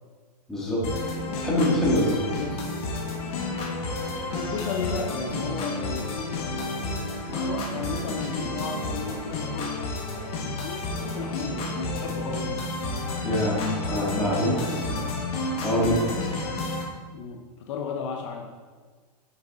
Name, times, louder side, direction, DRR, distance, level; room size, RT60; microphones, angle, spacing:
voice 1, 0.5-0.9 1.4-2.2 13.2-14.8 15.6-16.1, left 1 dB, ahead, -7 dB, 1.9 m, -24 dB
sound 1, 0.8-16.8, left 2 dB, 25° left, 1.6 m, -31 dB
sound 2, 1.1-9.8, left 2 dB, 85° left, 1.8 m, -41 dB
voice 2, 2.1-2.7 4.3-12.6 14.3-15.2 17.1-18.5, left 5 dB, 45° left, 2 dB, 0.9 m, -35 dB
9.2 x 6.4 x 3.7 m, 1.5 s
hypercardioid pair, 155°, 21 cm